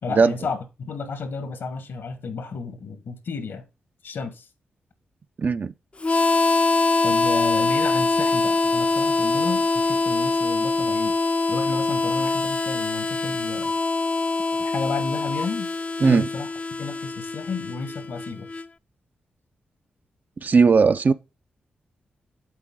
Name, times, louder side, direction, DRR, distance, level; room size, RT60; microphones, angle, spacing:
voice 1, 0.0-3.6 4.0-4.5 7.0-11.2 11.5-13.7 14.5-15.7 16.0-16.5 16.8-18.5, left 4 dB, 75° left, 1.3 m, -32 dB
voice 2, 5.4-5.7 16.0-16.3 20.4-21.1, right 5 dB, 45° right, 0.4 m, -18 dB
Harmonica, 6.0-18.7, left 3 dB, 30° left, 0.4 m, -23 dB
8.3 x 3.9 x 3.6 m
supercardioid pair, 45°, 4 cm